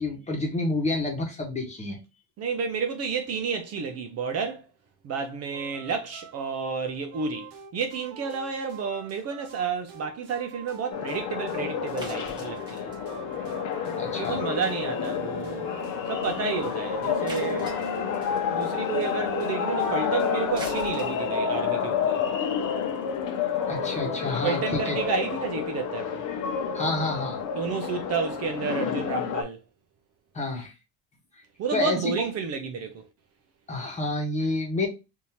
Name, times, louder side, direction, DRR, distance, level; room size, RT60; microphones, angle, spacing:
voice 1, 0.0-2.0 14.0-14.4 23.7-25.0 26.7-27.4 30.3-30.7 31.7-32.1 33.7-34.9, left 2 dB, 20° left, 1.1 m, -28 dB
voice 2, 2.4-4.7 5.0-12.9 14.2-15.7 16.1-17.8 18.5-22.2 24.4-26.2 27.6-29.6 31.6-33.0, right 5 dB, 45° right, 0.5 m, -31 dB
sound 1, 5.5-21.1, right 7 dB, 70° right, 0.9 m, -43 dB
sound 2, 10.9-29.4, left 7 dB, 60° left, 0.9 m, -29 dB
sound 3, 12.0-14.2 14.5-14.8 15.1-15.2 15.4-15.5 15.8-15.9 16.3-16.4 17.3-18.5 20.3-24.7, right 1 dB, 10° right, 1.3 m, -45 dB
3.6 x 2.7 x 2.9 m
cardioid pair, 155°, 37 cm